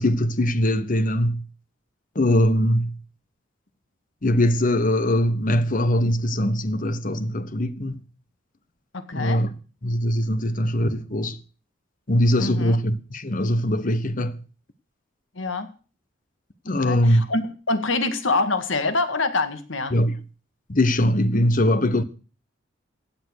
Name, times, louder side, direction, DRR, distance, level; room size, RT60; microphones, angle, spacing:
voice 1, 0.0-1.4 2.1-2.9 4.2-8.0 9.1-9.5 9.8-11.4 12.1-14.4 16.6-17.2 19.9-20.2 20.7-22.0, left 1 dB, 45° left, 1.2 m, -21 dB
voice 2, 8.9-9.4 12.4-12.7 15.4-15.7 16.8-19.9, left 3 dB, 85° left, 1.9 m, -25 dB
16.0 x 8.9 x 6.5 m
head